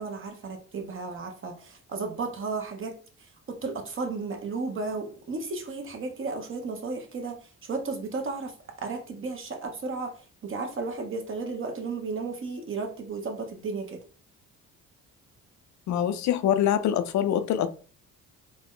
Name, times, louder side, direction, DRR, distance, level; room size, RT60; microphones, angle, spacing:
voice 1, 0.0-3.0 3.5-8.5 8.8-10.1 10.4-14.0, right 4 dB, 45° right, 1.0 m, -34 dB
voice 2, 15.9-17.7, left 10 dB, 70° left, 0.5 m, -24 dB
3.8 x 2.1 x 3.8 m
cardioid pair, 90°, 30 cm